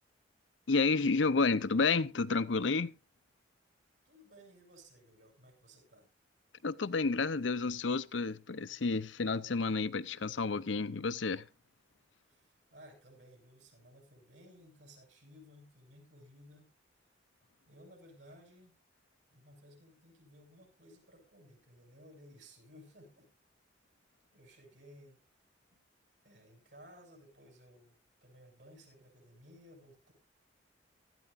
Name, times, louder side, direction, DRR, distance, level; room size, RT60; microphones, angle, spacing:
voice 1, 0.7-2.9 6.6-11.4, left 4 dB, 85° left, 0.7 m, -30 dB
voice 2, 4.1-6.1 12.3-16.7 17.7-18.7 19.3-23.3 24.3-25.2 25.7-25.8 26.2-30.1, equal, 70° right, 7.5 m, -58 dB
17.0 x 13.5 x 2.6 m
head